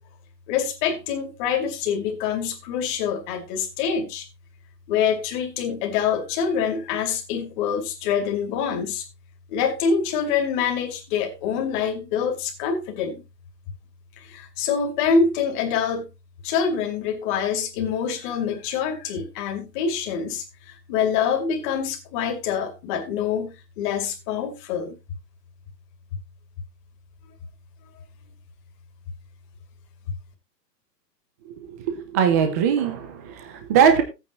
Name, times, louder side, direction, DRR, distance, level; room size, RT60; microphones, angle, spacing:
voice 1, 0.5-4.3 4.9-9.1 9.5-13.2 14.2-16.1 16.4-24.9, left 6 dB, 30° left, 2.6 m, -25 dB
voice 2, 31.7-34.0, right 7 dB, 10° right, 0.5 m, -21 dB
14.5 x 9.0 x 3.0 m
hypercardioid pair, 160°, 50 cm